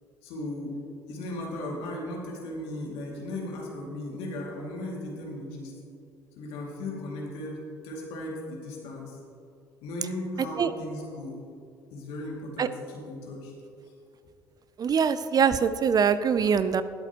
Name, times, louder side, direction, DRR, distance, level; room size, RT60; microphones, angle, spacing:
voice 1, 0.2-0.8 1.1-5.7 6.4-9.2 9.8-11.4 11.9-13.5, left 1 dB, 70° left, -2 dB, 2.5 m, -36 dB
voice 2, 14.8-16.8, right 7 dB, 40° right, 13 dB, 0.5 m, -23 dB
19.0 x 8.2 x 3.0 m, 2.5 s
hypercardioid pair, 60°, 10 cm